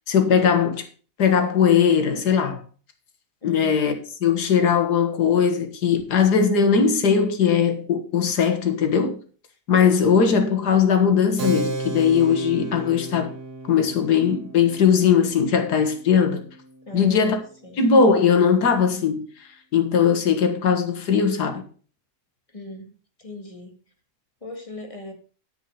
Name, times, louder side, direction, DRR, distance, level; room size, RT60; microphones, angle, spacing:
voice 1, 0.1-0.8 1.2-2.6 3.4-3.9 4.2-9.2 9.7-13.3 13.7-16.4 16.9-17.4 17.8-19.3 19.7-21.6, left 6 dB, 90° left, 2.0 m, -19 dB
voice 2, 3.4-3.8 16.9-17.4 17.6-17.8 22.5-22.9 23.2-23.7 24.4-25.1, left 1 dB, 20° left, 1.9 m, -38 dB
Keyboard (musical), 11.4-17.5, right 3 dB, 80° right, 2.1 m, -34 dB
10.0 x 7.0 x 5.6 m
omnidirectional pair, 1.7 m